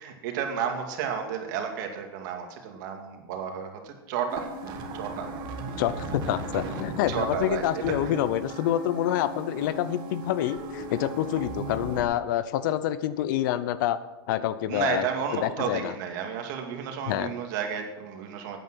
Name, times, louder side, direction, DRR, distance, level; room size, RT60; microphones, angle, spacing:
voice 1, 0.0-5.3 5.7-5.8 7.1-7.9 14.7-18.6, right 7 dB, 55° right, 3 dB, 2.3 m, -32 dB
sound 1, 4.3-12.0, right 2 dB, 35° right, 1.6 m, -37 dB
voice 2, 5.8-14.0 14.3-15.1 15.3-15.9 17.1-17.3, left 12 dB, 55° left, 14 dB, 0.7 m, -27 dB
12.5 x 9.2 x 6.2 m, 1.1 s
supercardioid pair, 160°, 12 cm